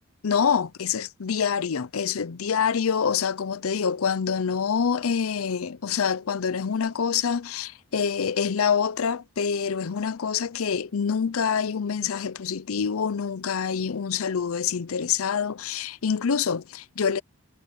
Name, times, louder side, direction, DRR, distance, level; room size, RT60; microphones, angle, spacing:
voice 1, 0.2-17.2, left 6 dB, 85° left, 0.6 m, -26 dB
head